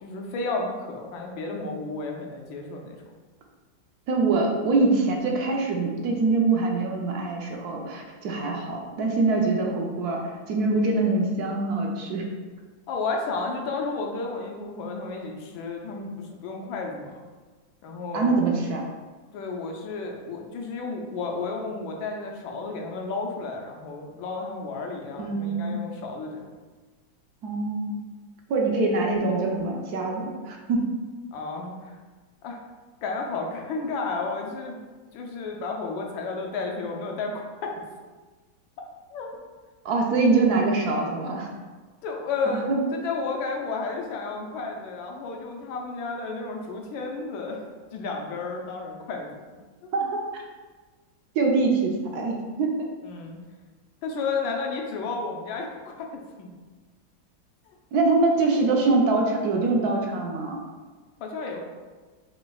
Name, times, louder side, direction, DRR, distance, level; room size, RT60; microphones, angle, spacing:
voice 1, 0.0-3.0 12.9-17.2 17.8-18.4 19.3-26.5 31.3-32.0 32.4-32.6 33.0-34.8 35.1-37.7 39.1-39.3 42.0-47.6 47.9-49.4 53.0-53.4 54.0-56.5 61.2-61.7, left 3 dB, 85° left, 1 dB, 1.5 m, -32 dB
voice 2, 4.1-12.3 18.1-18.8 25.2-25.8 27.4-28.0 28.5-30.9 39.8-41.5 42.5-42.9 49.9-50.4 51.3-52.9 57.9-60.6, right 3 dB, 65° right, 0 dB, 1.0 m, -24 dB
6.1 x 3.3 x 2.3 m, 1.4 s
omnidirectional pair, 2.1 m